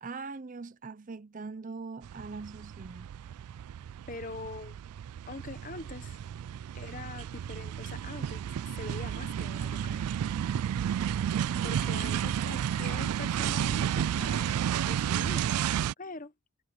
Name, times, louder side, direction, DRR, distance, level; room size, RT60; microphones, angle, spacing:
voice 1, 0.0-3.1, right 4 dB, 35° right, 0.5 m, -41 dB
sound 1, 2.0-15.9, right 9 dB, 85° right, 0.3 m, -32 dB
voice 2, 4.1-4.8 5.2-6.2 6.7-8.4 8.7-10.1 11.6-15.5 16.0-16.3, left 3 dB, 35° left, 1.1 m, -43 dB
head